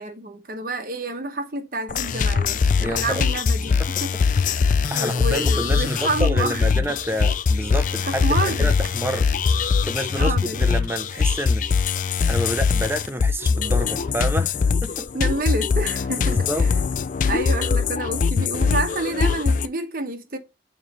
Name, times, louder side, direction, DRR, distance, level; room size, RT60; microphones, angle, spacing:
voice 1, 0.0-4.1 4.4-6.8 8.1-8.7 10.2-10.7 15.1-16.7 17.3-20.4, right 2 dB, 50° right, 1.1 m, -29 dB
sound 1, 1.9-19.7, left 5 dB, 45° left, 0.4 m, -22 dB
voice 2, 2.8-3.2 3.8-3.9 4.9-9.3 9.8-11.7 12.3-15.1 16.2-16.7, right 1 dB, 15° right, 0.7 m, -28 dB
7.2 x 3.2 x 5.2 m
head